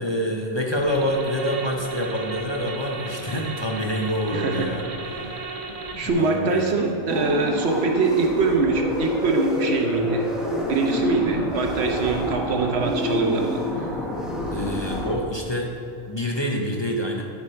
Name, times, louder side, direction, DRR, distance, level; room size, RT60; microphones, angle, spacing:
voice 1, 0.0-4.8 5.1-5.5 5.9-7.0 14.5-15.7 16.1-17.2, equal, 30° left, 0 dB, 0.7 m, -27 dB
sound 1, 0.8-6.1, right 3 dB, 40° right, 0.8 m, -35 dB
voice 2, 4.3-4.8 6.0-10.3 10.7-13.9, right 3 dB, 75° right, 3 dB, 1.1 m, -23 dB
sound 2, 7.1-15.2, left 1 dB, ahead, 0.9 m, -28 dB
11.5 x 5.0 x 4.4 m, 2.7 s
omnidirectional pair, 1.1 m